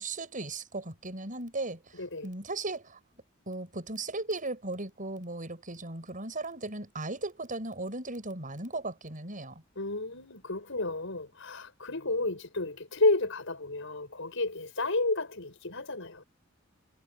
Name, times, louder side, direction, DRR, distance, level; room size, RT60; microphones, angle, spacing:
voice 1, 0.0-1.8 2.2-3.0 3.5-9.6, right 2 dB, 40° right, 7.6 m, -37 dB
voice 2, 2.0-2.3 9.8-16.2, left 2 dB, 70° left, 7.8 m, -31 dB
head